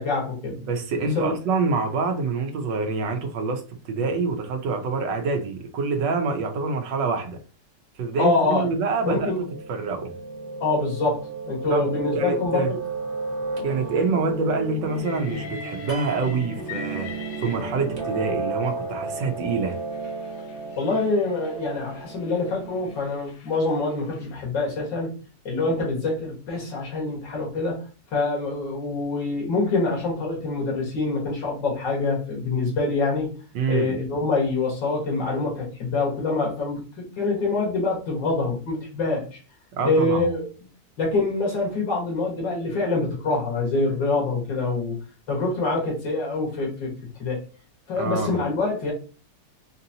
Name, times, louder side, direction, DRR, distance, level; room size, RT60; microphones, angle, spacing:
voice 1, 0.0-0.6 1.2-1.3 8.2-8.6 9.1-9.4 10.6-12.8 20.8-25.1 25.4-27.8 28.1-33.3 33.7-39.4 39.8-40.5 41.0-47.4 47.9-48.9, left 3 dB, 90° left, 2.4 m, -25 dB
voice 2, 0.6-3.6 3.9-7.4 8.0-10.1 11.7-12.7 13.6-17.1 17.4-19.8 33.5-34.0 39.7-40.3 48.0-48.4, right 4 dB, 85° right, 1.5 m, -26 dB
Piano, 8.5-23.0, right 3 dB, 55° right, 1.7 m, -34 dB
Train, 14.9-18.3 19.1-24.4, left 6 dB, 60° left, 1.1 m, -43 dB
sound 1, 15.9-17.6, right 4 dB, 40° left, 1.0 m, -41 dB
5.1 x 2.7 x 2.8 m
omnidirectional pair, 1.9 m